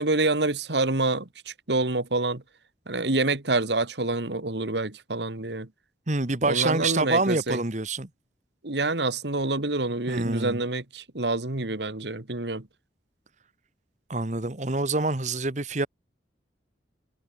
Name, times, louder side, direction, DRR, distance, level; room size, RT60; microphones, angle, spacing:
voice 1, 0.0-2.4 2.9-5.7 6.4-7.6 8.6-12.6, right 2 dB, 75° right, 2.2 m, -27 dB
voice 2, 6.1-8.1 10.1-10.6 14.1-15.9, right 3 dB, 40° right, 1.6 m, -26 dB
head